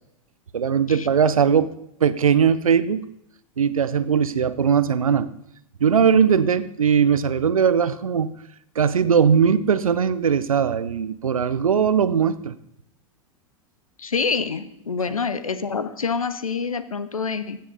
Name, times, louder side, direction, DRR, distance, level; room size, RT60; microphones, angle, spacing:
voice 1, 0.5-1.7 2.0-3.0 3.6-5.3 5.8-8.3 8.8-12.5, right 7 dB, 85° right, 15 dB, 0.6 m, -19 dB
voice 2, 14.0-17.6, left 5 dB, 90° left, 13 dB, 0.8 m, -26 dB
15.5 x 7.6 x 4.2 m, 0.77 s
hypercardioid pair, 95°, 17 cm